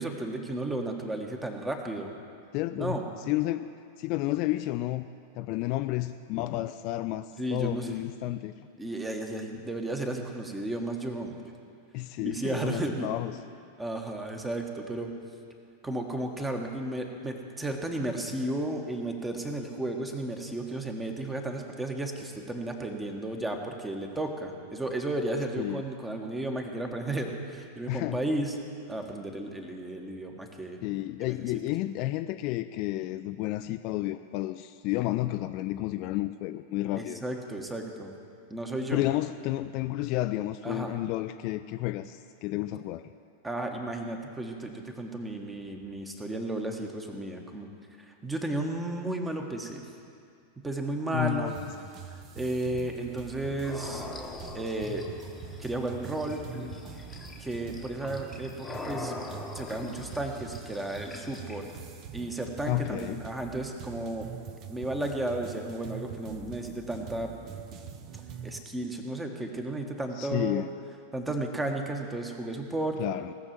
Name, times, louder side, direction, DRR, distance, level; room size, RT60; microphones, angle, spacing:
voice 1, 0.0-2.1 2.8-3.0 7.4-8.0 8.8-11.3 12.2-13.1 13.8-15.1 15.8-28.6 28.9-30.8 31.5-31.6 37.0-38.1 38.5-39.1 40.6-40.9 43.4-47.7 48.0-49.8 50.6-51.5 52.1-54.1 54.5-55.0 55.6-56.4 57.4-59.1 59.5-61.7 62.1-64.3 64.7-67.3 68.4-70.6 71.1-73.0, right 2 dB, 10° right, 3 dB, 1.4 m, -33 dB
voice 2, 2.5-3.0 3.3-3.7 4.0-5.1 5.4-8.7 11.9-13.4 25.6-25.8 27.9-28.2 30.8-37.2 38.9-43.1 51.1-51.5 62.7-63.2 70.2-70.7 73.0-73.3, left 16 dB, 45° left, 10 dB, 0.3 m, -31 dB
sound 1, 51.5-68.6, right 7 dB, 35° right, 0.9 m, -44 dB
sound 2, 53.6-61.7, left 3 dB, 10° left, 1.2 m, -43 dB
18.0 x 6.7 x 7.5 m, 2.4 s
figure-of-eight pair, 90°, 0 cm